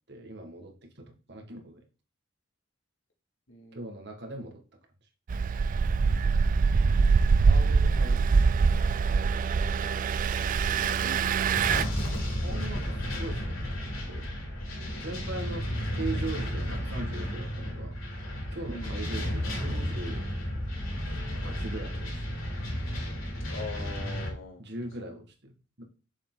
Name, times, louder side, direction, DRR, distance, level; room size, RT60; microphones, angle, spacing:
voice 1, 0.1-1.8 3.7-4.6 7.4-8.8 12.4-14.2 15.0-17.9 18.5-20.3 21.4-22.4 24.6-25.8, right 2 dB, 55° right, 4 dB, 1.8 m, -40 dB
voice 2, 3.5-3.8 10.7-12.0 18.7-19.0 23.5-24.6 25.0-25.2, left 2 dB, 70° left, 0 dB, 2.6 m, -43 dB
Engine, 5.3-11.8, right 5 dB, 40° right, 0.3 m, -24 dB
sound 1, 11.5-24.3, equal, 90° left, 4.1 m, -33 dB
7.0 x 6.9 x 3.9 m, 0.35 s
head